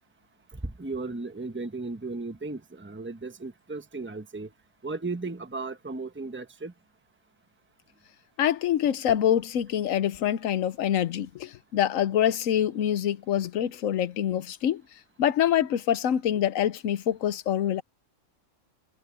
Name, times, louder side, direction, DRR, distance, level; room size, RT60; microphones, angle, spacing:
voice 1, 0.5-4.5 4.8-6.7, right 3 dB, 10° right, 1.0 m, -35 dB
voice 2, 8.4-14.8 15.2-17.8, left 10 dB, 80° left, 1.2 m, -25 dB
omnidirectional pair, 1.4 m